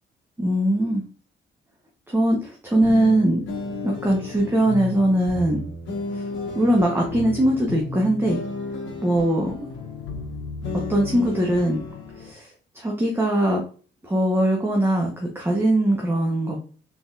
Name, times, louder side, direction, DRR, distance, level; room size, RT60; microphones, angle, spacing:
voice 1, 0.4-1.0 2.1-3.4 3.8-5.6 6.1-6.2 6.5-8.4 9.0-9.7 10.7-11.8 12.2-12.5 12.7-13.6 14.0-16.6, right 1 dB, 10° right, -1 dB, 0.8 m, -21 dB
sound 1, 2.8-12.3, left 3 dB, 75° left, 1.1 m, -33 dB
3.9 x 3.6 x 2.3 m, 0.40 s
cardioid pair, 90°, 20 cm